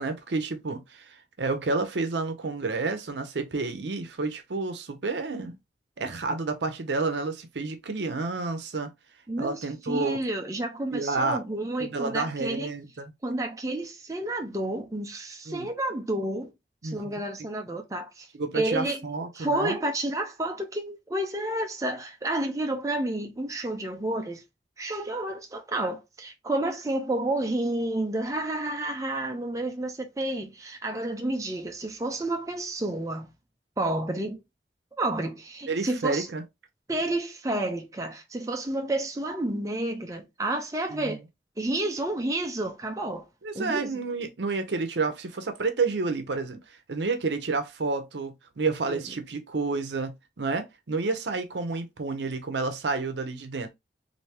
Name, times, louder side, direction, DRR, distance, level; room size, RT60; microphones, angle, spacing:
voice 1, 0.0-5.6 6.0-8.9 9.4-10.2 10.9-11.4 11.8-13.1 15.5-15.7 16.8-17.2 18.3-19.8 35.7-36.4 40.9-41.2 43.4-46.6 46.9-53.7, right 3 dB, 85° right, 0.7 m, -30 dB
voice 2, 9.3-12.7 13.2-16.5 16.8-18.3 18.5-19.0 19.3-24.4 24.8-33.3 33.8-34.4 35.0-36.3 36.9-41.2 41.6-43.3 43.5-44.0 48.9-49.0, right 1 dB, 20° right, 0.6 m, -30 dB
3.3 x 2.7 x 2.8 m
head